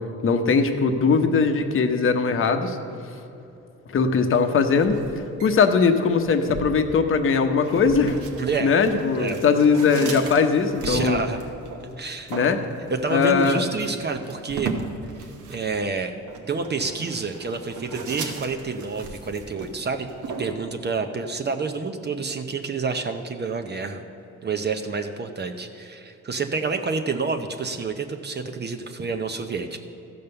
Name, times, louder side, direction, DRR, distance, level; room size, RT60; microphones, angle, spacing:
voice 1, 0.2-2.8 3.9-5.0 5.4-8.2 8.6-11.2 12.3-12.6 13.1-13.6, left 5 dB, 45° left, 6 dB, 0.9 m, -20 dB
sound 1, 4.3-20.6, right 4 dB, 80° right, 1.3 m, -37 dB
voice 2, 8.4-8.7 9.1-9.4 10.8-11.4 12.0-12.3 12.9-14.7 15.5-16.2 16.5-20.1 20.4-24.0 24.4-29.8, right 4 dB, 35° right, 6 dB, 0.7 m, -28 dB
14.0 x 5.3 x 6.8 m, 2.9 s
cardioid pair, 90°, 30 cm